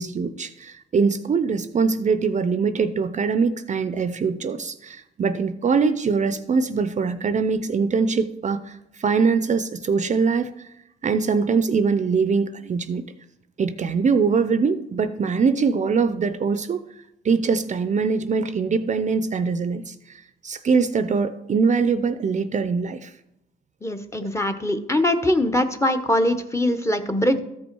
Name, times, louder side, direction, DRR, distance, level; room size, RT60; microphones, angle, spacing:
voice 1, 0.0-10.5 11.0-13.0 13.6-16.9 17.2-23.1, right 5 dB, 35° right, 11 dB, 0.5 m, -23 dB
voice 2, 23.8-27.4, left 1 dB, 15° left, 7 dB, 0.8 m, -22 dB
13.5 x 5.3 x 4.6 m, 0.84 s
cardioid pair, 90°, 20 cm